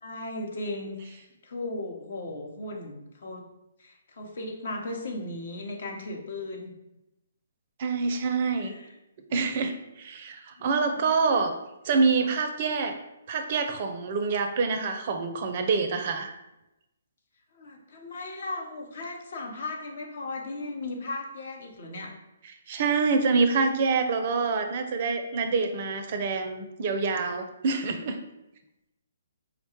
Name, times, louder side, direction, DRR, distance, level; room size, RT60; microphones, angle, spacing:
voice 1, 0.0-3.4 3.8-6.7 8.5-8.9 10.6-11.0 12.2-12.3 17.5-22.1, left 2 dB, 60° left, 1 dB, 0.8 m, -37 dB
voice 2, 7.8-8.7 9.3-11.5 11.8-13.0 13.3-16.3 22.4-28.2, right 4 dB, 45° right, 7 dB, 0.4 m, -26 dB
4.9 x 2.2 x 2.9 m, 0.91 s
figure-of-eight pair, 135°, 0 cm